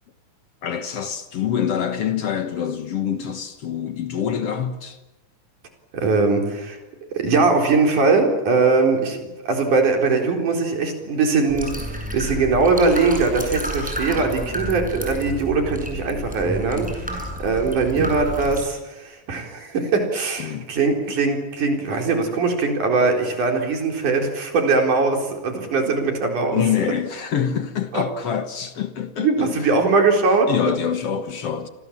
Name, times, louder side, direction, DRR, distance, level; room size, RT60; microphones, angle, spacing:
voice 1, 0.6-5.0 20.4-20.7 26.5-29.5 30.5-31.7, left 8 dB, 55° left, 2.2 m, -25 dB
voice 2, 5.9-6.8 7.1-26.6 27.9-28.0 29.2-30.5, right 4 dB, 80° right, 5.7 m, -21 dB
sound 1, 11.5-18.6, equal, ahead, 7.4 m, -30 dB
29.5 x 25.0 x 7.5 m
omnidirectional pair, 3.5 m